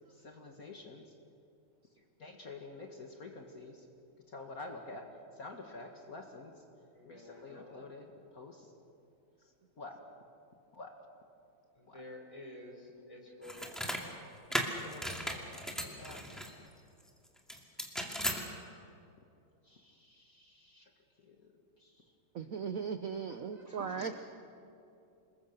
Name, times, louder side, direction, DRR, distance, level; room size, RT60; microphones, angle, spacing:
voice 1, 0.1-1.0 2.2-3.9 4.3-5.1 5.4-6.5 7.1-8.1 8.3-8.7 9.8-10.0 10.7-10.9 11.9-12.0 14.8-16.3 19.6-20.9 21.2-21.5 21.8-22.0 23.6-24.1, left 3 dB, 50° left, 3 dB, 2.0 m, -49 dB
voice 2, 6.9-7.9 11.8-14.0 18.2-18.9, left 1 dB, 15° left, 1 dB, 4.3 m, -51 dB
sound 1, 13.4-14.0 14.5-16.5 17.5-18.4, equal, ahead, 2.2 m, -36 dB
voice 3, 22.3-24.2, right 6 dB, 55° right, 8 dB, 1.1 m, -37 dB
27.0 x 21.5 x 6.7 m, 2.7 s
omnidirectional pair, 2.1 m